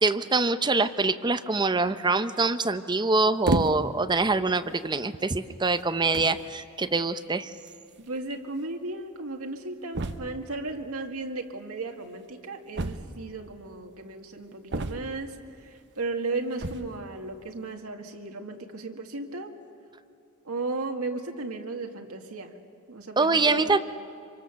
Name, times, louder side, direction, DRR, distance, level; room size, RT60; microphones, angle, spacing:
voice 1, 0.0-7.5 23.2-23.8, right 3 dB, 20° right, 11 dB, 0.7 m, -24 dB
sound 1, 3.4-4.1 4.8-5.0 5.8-5.9 6.1-6.4 7.7-7.8 8.0-8.1 8.3-8.4 9.9-10.5 12.7-13.4 14.7-15.3 16.5-17.0, right 2 dB, 55° right, 0.9 m, -30 dB
voice 2, 8.0-19.5 20.4-22.6 22.9-23.8, right 3 dB, 90° right, 4 dB, 1.9 m, -35 dB
26.0 x 24.5 x 7.0 m, 2.6 s
head